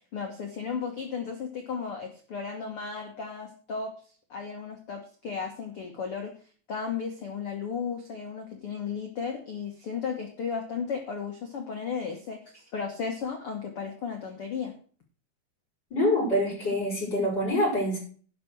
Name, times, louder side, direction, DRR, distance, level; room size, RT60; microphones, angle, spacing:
voice 1, 0.1-3.9 4.3-6.3 6.7-14.7, left 6 dB, 80° left, 3 dB, 1.2 m, -34 dB
voice 2, 15.9-18.0, left 1 dB, 25° left, -3 dB, 5.8 m, -25 dB
11.5 x 6.0 x 6.3 m, 0.42 s
omnidirectional pair, 4.9 m